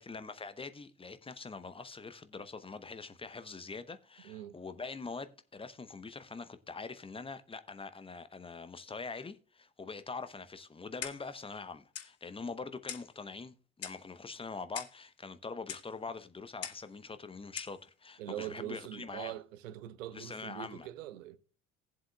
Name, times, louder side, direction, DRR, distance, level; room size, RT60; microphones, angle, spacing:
voice 1, 0.0-19.4 20.1-20.9, left 4 dB, 15° left, 0.8 m, -44 dB
voice 2, 4.2-4.6 18.2-21.4, right 13 dB, 70° right, 1.0 m, -43 dB
Clock, 11.0-11.4 11.9-12.1 12.9-13.1 13.8-14.1 14.7-15.0 15.7-15.9 16.6-16.9 17.6-17.8, left 9 dB, 35° left, 1.2 m, -42 dB
18.5 x 7.5 x 2.3 m
figure-of-eight pair, 60°, 40 cm